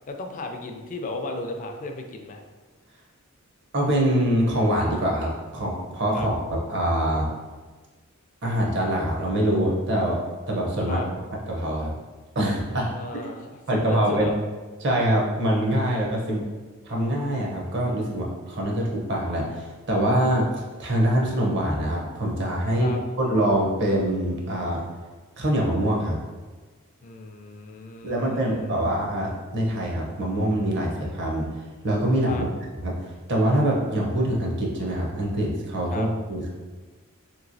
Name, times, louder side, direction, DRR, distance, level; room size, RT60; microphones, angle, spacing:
voice 1, 0.1-2.4 6.1-6.3 10.9-11.1 12.9-14.3 22.8-23.0 27.0-28.8 32.3-32.4 35.9-36.1, left 2 dB, 40° left, 3 dB, 0.4 m, -35 dB
voice 2, 3.7-7.3 8.4-10.2 10.5-11.0 11.5-11.9 12.3-12.9 13.7-14.3 14.8-16.5 16.8-20.5 20.8-24.8 25.4-26.2 28.0-31.4 31.8-32.5 32.8-36.5, right 1 dB, 55° right, -2 dB, 0.7 m, -24 dB
3.0 x 2.8 x 2.6 m, 1.4 s
head